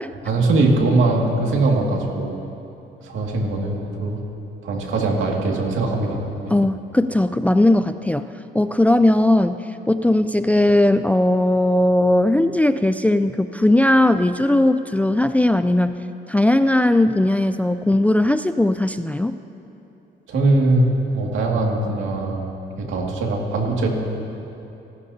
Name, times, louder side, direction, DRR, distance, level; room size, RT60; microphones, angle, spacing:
voice 1, 0.2-2.3 3.0-4.2 4.6-6.5 20.3-22.4 22.8-23.9, right 2 dB, 80° right, 0 dB, 2.3 m, -21 dB
voice 2, 6.5-8.3 8.5-9.6 9.9-16.0 16.3-19.4, left 1 dB, 5° left, 10 dB, 0.3 m, -18 dB
29.0 x 12.0 x 2.8 m, 2.9 s
cardioid pair, 90°, 20 cm